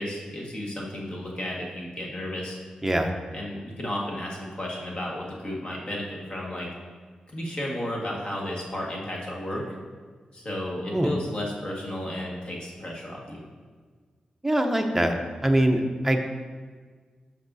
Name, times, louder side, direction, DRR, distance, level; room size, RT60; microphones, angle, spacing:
voice 1, 0.0-2.6 3.3-6.0 6.3-6.7 7.3-9.6 10.3-13.4, left 1 dB, 40° left, -3 dB, 1.7 m, -33 dB
voice 2, 2.8-3.1 10.9-11.1 14.4-15.2 15.4-16.3, right 1 dB, 10° right, 3 dB, 0.7 m, -23 dB
12.0 x 5.5 x 2.7 m, 1.5 s
wide cardioid pair, 125°, 2 cm